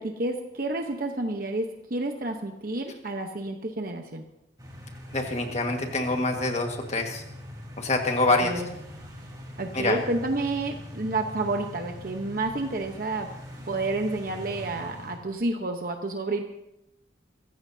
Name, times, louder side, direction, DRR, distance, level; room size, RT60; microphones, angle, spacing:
voice 1, 0.0-4.2 8.4-8.7 9.6-13.3 13.6-16.4, right 2 dB, 50° right, 4 dB, 1.0 m, -30 dB
sound 1, 4.6-15.2, left 1 dB, 20° right, 3.9 m, -42 dB
voice 2, 5.1-7.2 7.8-8.5 9.7-10.0, left 2 dB, 35° left, 3 dB, 1.7 m, -25 dB
25.0 x 15.0 x 2.8 m, 0.86 s
head